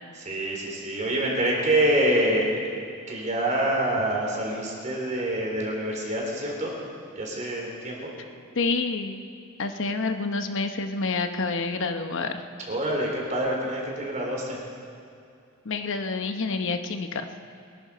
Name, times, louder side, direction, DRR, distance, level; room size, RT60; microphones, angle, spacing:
voice 1, 0.1-6.7 7.2-8.1 12.7-14.6, right 1 dB, 35° right, -2 dB, 4.0 m, -26 dB
voice 2, 8.6-9.2 9.6-12.5 15.6-17.3, left 3 dB, 60° left, 7 dB, 0.9 m, -28 dB
24.0 x 11.0 x 5.1 m, 2.4 s
head